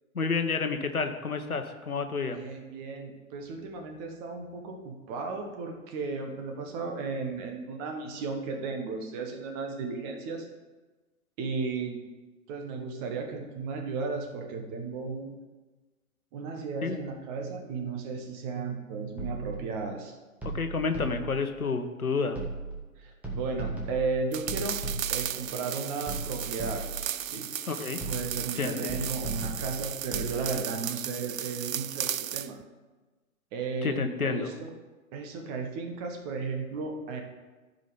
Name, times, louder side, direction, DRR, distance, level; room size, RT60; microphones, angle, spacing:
voice 1, 0.1-2.4 16.8-17.0 20.4-22.4 27.7-28.0 28.6-28.8 33.8-34.5, left 4 dB, 80° left, 7 dB, 1.1 m, -30 dB
voice 2, 2.3-10.5 11.4-12.0 12.5-15.4 16.3-20.2 23.0-24.8 25.1-26.8 27.2-27.5 28.1-32.6 33.5-34.7 35.1-37.2, right 4 dB, 25° right, 3 dB, 1.3 m, -35 dB
sound 1, 19.2-19.7 20.4-21.5 22.3-22.9 23.2-25.4 26.1-27.1 28.0-28.5 28.9-30.4, right 2 dB, 5° right, 1.6 m, -36 dB
sound 2, 24.3-32.5, right 10 dB, 70° right, 0.5 m, -35 dB
14.0 x 5.2 x 5.2 m, 1.2 s
figure-of-eight pair, 120°, 42 cm